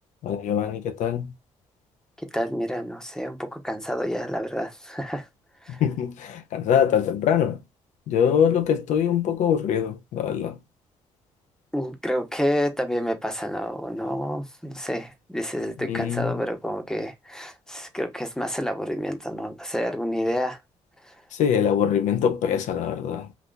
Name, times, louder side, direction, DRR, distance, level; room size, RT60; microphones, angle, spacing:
voice 1, 0.2-1.3 5.7-7.6 8.1-10.6 15.9-16.4 21.3-23.3, left 8 dB, 75° left, 0.6 m, -23 dB
voice 2, 2.2-5.3 5.6-5.8 11.7-20.6 21.0-21.2, equal, 5° left, 0.9 m, -29 dB
3.8 x 2.8 x 2.3 m
cardioid pair, 75°, 12 cm